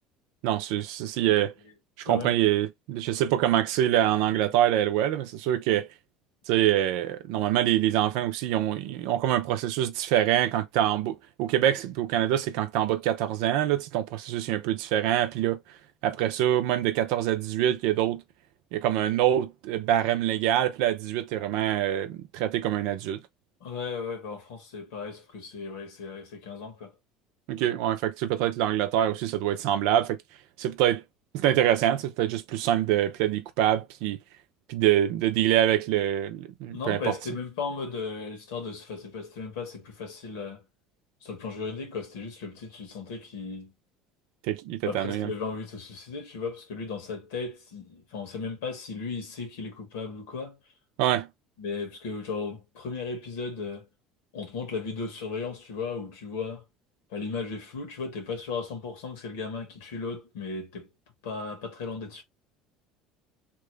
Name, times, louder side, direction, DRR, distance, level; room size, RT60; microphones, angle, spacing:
voice 1, 0.4-1.5 2.0-5.9 6.5-15.6 16.0-18.2 18.7-23.2 27.5-30.2 30.6-31.0 31.3-34.2 34.7-37.1 44.4-45.3 51.0-51.3, right 12 dB, 75° right, 0.5 m, -25 dB
voice 2, 23.6-26.9 36.7-40.6 41.2-43.7 44.9-50.6 51.6-53.9 54.3-56.6 57.1-60.9 61.2-62.2, left 4 dB, 85° left, 1.4 m, -36 dB
3.0 x 2.2 x 3.2 m
supercardioid pair, 95°, 0 cm